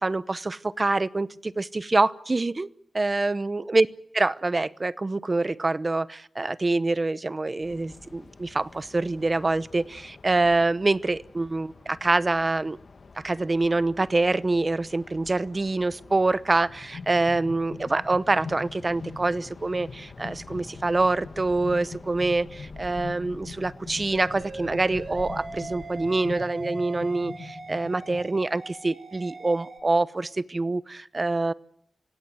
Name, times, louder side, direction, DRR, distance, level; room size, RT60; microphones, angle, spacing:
voice 1, 0.0-2.7 2.9-3.9 4.1-12.8 13.2-31.5, right 2 dB, 35° right, 16 dB, 0.8 m, -25 dB
sound 1, 7.6-26.4, left 4 dB, 60° left, 1.6 m, -48 dB
sound 2, 16.7-28.3, left 4 dB, 75° left, 5.0 m, -42 dB
sound 3, 24.1-29.8, right 3 dB, 60° right, 3.7 m, -41 dB
26.5 x 17.0 x 9.3 m, 0.75 s
wide cardioid pair, 95°, 0 cm